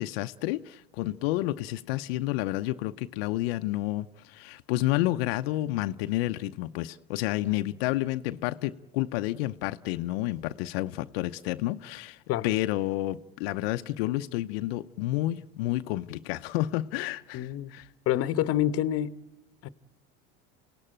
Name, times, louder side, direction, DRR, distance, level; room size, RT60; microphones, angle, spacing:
voice 1, 0.0-17.9, left 16 dB, 80° left, 0.7 m, -30 dB
voice 2, 17.3-17.7 18.1-19.2 19.6-19.7, left 12 dB, 50° left, 1.0 m, -27 dB
26.5 x 17.5 x 8.8 m
supercardioid pair, 105°, 30 cm